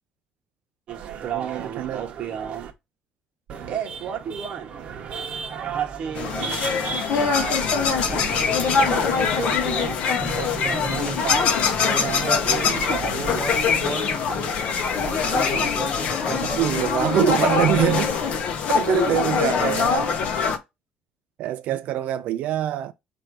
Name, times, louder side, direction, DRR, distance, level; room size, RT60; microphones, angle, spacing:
sound 1, 0.9-2.7 3.5-9.9 10.2-13.9 14.8-15.7, right 7 dB, 45° right, 0.9 m, -32 dB
voice 1, 1.3-2.1 6.4-6.5 8.9-9.2 16.3-18.1 18.7-20.2 21.4-22.9, right 12 dB, 60° right, 0.4 m, -24 dB
sound 2, 6.2-20.6, left 6 dB, 50° left, 0.7 m, -23 dB
voice 2, 10.6-11.2 11.8-12.8 13.2-14.6 15.2-16.9 21.7-21.8, right 2 dB, 5° right, 0.8 m, -34 dB
4.4 x 2.6 x 4.5 m
cardioid pair, 165°, 3 cm